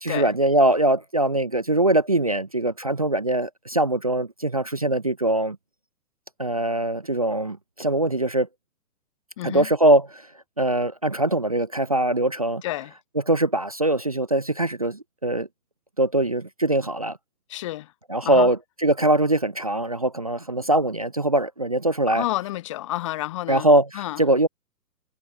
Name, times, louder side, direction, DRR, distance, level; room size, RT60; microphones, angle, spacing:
voice 1, 0.0-5.6 6.4-8.5 9.4-10.3 10.6-12.6 13.3-15.5 16.0-17.2 18.1-22.2 23.5-24.5, right 1 dB, 25° right, 0.6 m, -22 dB
voice 2, 9.4-9.7 12.6-12.9 17.5-17.9 18.2-18.5 22.1-23.7 23.9-24.2, left 15 dB, 20° left, 1.4 m, -30 dB
hypercardioid pair, 170°, 48 cm